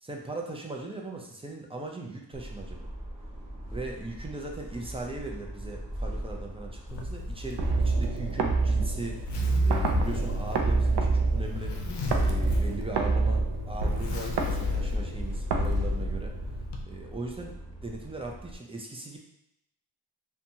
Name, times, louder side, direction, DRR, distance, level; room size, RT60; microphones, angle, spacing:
voice 1, 0.0-2.9 3.7-11.7 12.2-16.3 16.9-19.2, right 2 dB, 15° right, 0 dB, 0.4 m, -39 dB
sound 1, 2.3-18.6, right 1 dB, 10° left, 1.4 m, -40 dB
Zipper (clothing), 6.9-16.8, left 2 dB, 70° left, 0.6 m, -36 dB
sound 2, 7.6-16.6, right 3 dB, 70° right, 0.5 m, -27 dB
2.8 x 2.3 x 2.6 m, 0.83 s
wide cardioid pair, 85°, 43 cm